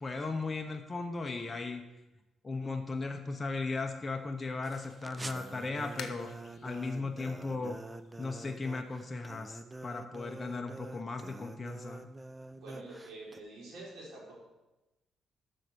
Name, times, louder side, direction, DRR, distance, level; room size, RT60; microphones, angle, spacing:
voice 1, 0.0-1.8 2.4-6.3 6.6-7.8 8.2-12.1, left 3 dB, 25° left, 4 dB, 0.8 m, -37 dB
sound 1, 4.0-9.2, left 7 dB, 65° left, 1.0 m, -54 dB
sound 2, 4.6-13.4, right 2 dB, 15° right, 0.5 m, -46 dB
voice 2, 12.6-14.3, right 2 dB, 75° right, -4 dB, 4.0 m, -47 dB
7.6 x 6.3 x 6.8 m, 1.0 s
cardioid pair, 90°, 0 cm